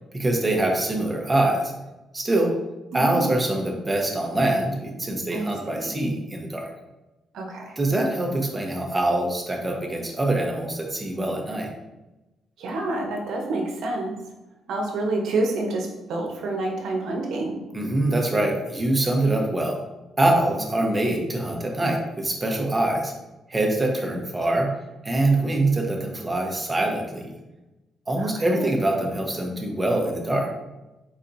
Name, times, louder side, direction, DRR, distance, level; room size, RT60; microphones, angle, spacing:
voice 1, 0.1-1.7 2.1-2.5 2.9-6.7 7.8-11.7 17.7-19.8 20.2-23.1 23.5-24.7 25.0-27.3 28.1-30.5, right 1 dB, 20° right, 1 dB, 0.9 m, -24 dB
voice 2, 2.9-3.2 5.3-5.5 5.8-5.9 7.3-7.7 12.6-14.2 14.7-17.5 20.8-20.9 28.2-28.7, right 2 dB, 75° right, 1 dB, 0.9 m, -28 dB
4.2 x 4.0 x 2.6 m, 1.0 s
cardioid pair, 90°, 0 cm